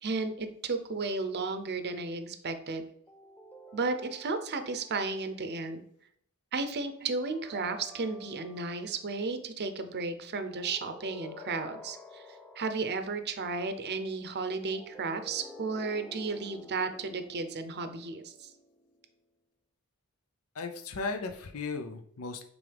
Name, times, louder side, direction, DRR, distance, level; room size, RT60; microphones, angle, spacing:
voice 1, 0.0-2.8 3.7-5.8 6.5-12.3 12.6-18.5, right 3 dB, 50° right, 9 dB, 0.7 m, -34 dB
sound 1, 3.1-5.5 7.2-9.1 10.4-13.2 14.5-19.0, left 1 dB, 5° left, 0.4 m, -51 dB
voice 2, 20.5-22.4, left 4 dB, 70° left, 5 dB, 0.6 m, -36 dB
9.1 x 3.8 x 3.4 m, 0.67 s
head